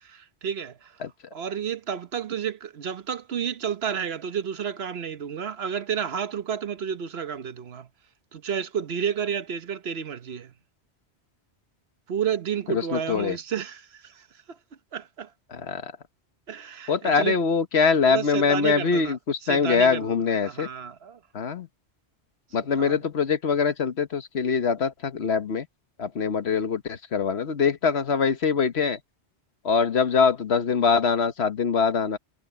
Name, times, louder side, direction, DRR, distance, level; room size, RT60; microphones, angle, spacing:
voice 1, 0.1-1.0 1.3-7.9 8.3-10.5 12.1-14.6 14.9-15.3 16.5-17.4 18.1-19.2 19.4-21.2 22.8-23.0, right 7 dB, 65° right, 1.1 m, -31 dB
voice 2, 12.7-13.4 15.5-15.9 16.9-20.7 21.3-21.7 22.5-25.7 26.0-29.0 29.6-32.2, left 5 dB, 70° left, 1.4 m, -23 dB
omnidirectional pair, 1.1 m